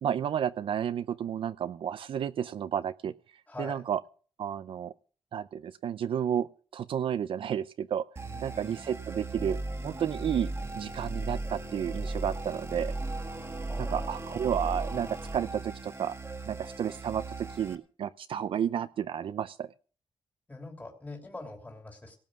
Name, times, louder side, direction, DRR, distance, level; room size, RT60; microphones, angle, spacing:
voice 1, 0.0-3.1 3.6-4.0 4.4-4.9 5.3-6.5 6.7-8.0 8.4-9.6 9.8-12.9 13.8-16.1 16.5-19.7, right 9 dB, 60° right, 12 dB, 0.5 m, -31 dB
voice 2, 3.5-3.8 8.2-8.8 13.7-14.1 20.5-22.2, left 2 dB, 15° left, 2 dB, 3.0 m, -43 dB
sound 1, 8.2-17.8, right 2 dB, 25° right, 1.8 m, -37 dB
18.0 x 7.3 x 6.2 m, 0.40 s
wide cardioid pair, 155°, 10 cm